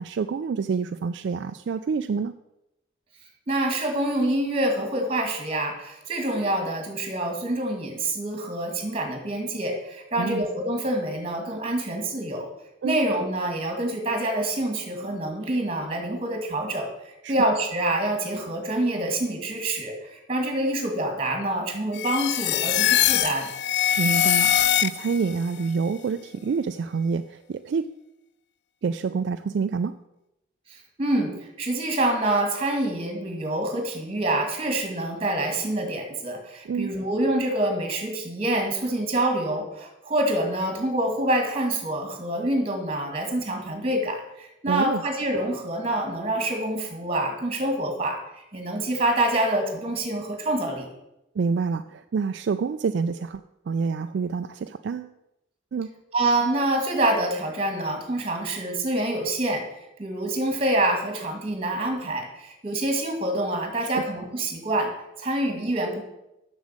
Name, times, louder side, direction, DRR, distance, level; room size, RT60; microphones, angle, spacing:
voice 1, 0.0-2.3 10.1-10.5 12.8-13.0 17.2-17.3 24.0-27.9 28.8-29.9 36.7-36.9 44.7-45.0 51.4-55.1 55.7-55.9 63.8-64.0, right 5 dB, 60° right, 9 dB, 0.3 m, -27 dB
voice 2, 3.5-12.5 12.8-16.9 17.3-23.5 30.7-50.9 56.1-59.6 60.0-64.9 65.2-66.0, right 1 dB, 30° right, 4 dB, 1.9 m, -26 dB
sound 1, 21.9-25.3, left 11 dB, 55° left, 0.3 m, -22 dB
7.3 x 6.3 x 7.4 m, 0.90 s
head